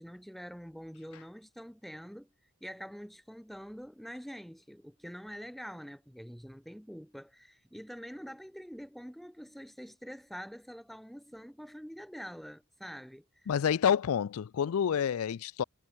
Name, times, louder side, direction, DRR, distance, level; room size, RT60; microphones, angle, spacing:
voice 1, 0.0-2.3 2.6-13.5, equal, ahead, 5.2 m, -46 dB
voice 2, 13.5-15.6, left 8 dB, 75° left, 0.4 m, -28 dB
head